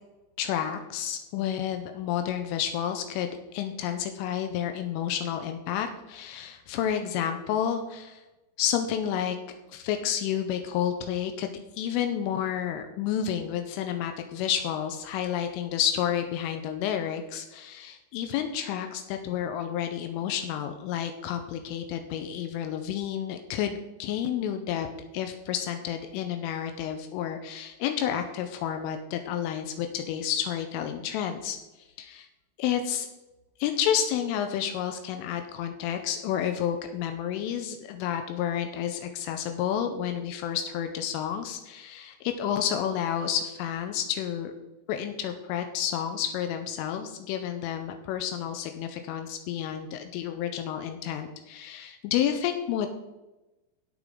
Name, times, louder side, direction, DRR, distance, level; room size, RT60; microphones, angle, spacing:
voice 1, 0.4-8.2 8.6-9.4 9.7-24.9 25.1-31.6 32.0-32.3 32.6-33.1 33.6-44.5 44.9-52.9, left 9 dB, 85° left, 6 dB, 3.2 m, -30 dB
13.5 x 8.3 x 3.7 m, 1.0 s
omnidirectional pair, 5.9 m